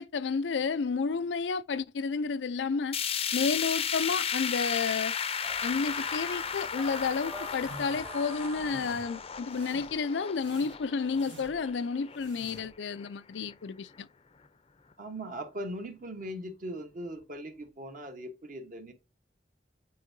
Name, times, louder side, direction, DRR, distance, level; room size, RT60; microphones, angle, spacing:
voice 1, 0.0-3.0 3.3-5.1 5.6-14.1, left 5 dB, 90° left, 0.5 m, -31 dB
sound 1, 2.9-13.1 13.5-13.6 14.0-14.1 14.9-15.0, left 7 dB, 35° left, 0.5 m, -35 dB
sound 2, 5.4-9.8, right 2 dB, 20° right, 0.9 m, -46 dB
sound 3, 7.5-8.1 8.5-9.1 9.5-10.0 10.3-11.7 12.1-12.8, right 2 dB, 80° right, 1.5 m, -50 dB
voice 2, 15.0-18.9, right 1 dB, 50° right, 1.2 m, -40 dB
8.5 x 4.5 x 2.7 m
head